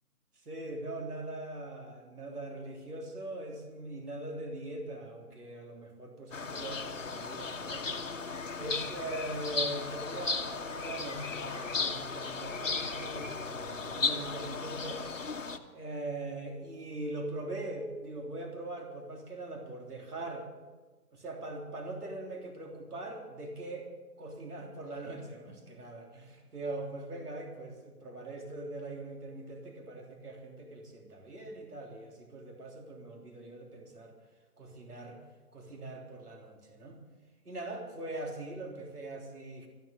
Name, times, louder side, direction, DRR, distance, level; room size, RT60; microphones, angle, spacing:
voice 1, 0.4-8.0 8.6-15.0 15.7-20.5 21.1-23.9 24.2-34.2 34.6-35.2 35.5-37.0 37.4-39.7, right 2 dB, 70° right, 1 dB, 3.3 m, -41 dB
sound 1, 6.3-15.6, left 4 dB, 55° left, 1.1 m, -35 dB
13.5 x 13.0 x 6.6 m, 1.3 s
hypercardioid pair, 175°, 47 cm